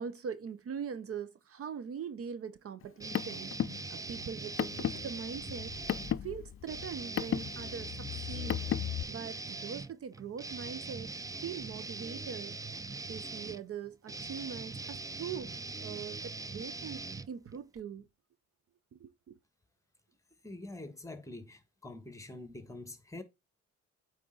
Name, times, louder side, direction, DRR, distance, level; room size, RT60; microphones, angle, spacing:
voice 1, 0.0-3.5 3.9-5.8 6.2-8.6 9.1-12.6 13.1-15.6 15.8-18.1 18.9-19.4, right 7 dB, 50° right, 0.7 m, -42 dB
Car, 2.8-9.0, left 10 dB, 45° left, 0.5 m, -36 dB
sound 1, 3.0-6.2 6.6-17.8, right 3 dB, 10° right, 0.4 m, -42 dB
voice 2, 20.4-23.2, left 2 dB, 10° left, 1.3 m, -45 dB
8.3 x 4.2 x 3.8 m
cardioid pair, 90°, 30 cm